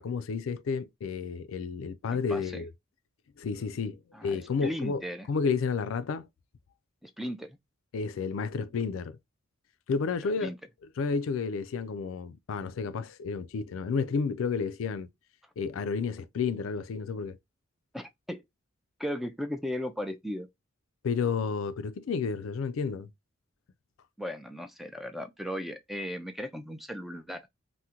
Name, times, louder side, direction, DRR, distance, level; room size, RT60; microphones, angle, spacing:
voice 1, 0.0-2.7 3.4-5.0 5.3-6.3 7.9-9.2 9.9-10.5 11.0-15.1 15.6-17.4 21.0-23.1, left 5 dB, 75° left, 0.4 m, -31 dB
voice 2, 2.1-2.6 4.1-5.3 7.0-7.6 10.4-10.6 17.9-18.4 19.0-20.5 24.2-27.5, equal, ahead, 0.3 m, -36 dB
3.6 x 2.1 x 2.7 m
head